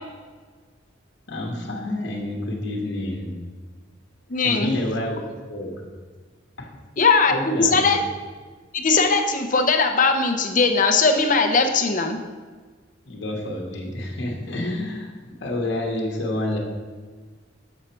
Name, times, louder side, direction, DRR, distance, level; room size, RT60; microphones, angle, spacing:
voice 1, 1.3-3.4 4.4-5.2 5.5-5.8 6.6-6.7 7.3-8.0 13.1-16.6, left 1 dB, 60° left, 0 dB, 1.1 m, -29 dB
voice 2, 4.3-4.8 7.0-8.0 8.7-12.2, left 4 dB, 40° left, 5 dB, 0.7 m, -19 dB
7.0 x 6.4 x 4.4 m, 1.5 s
head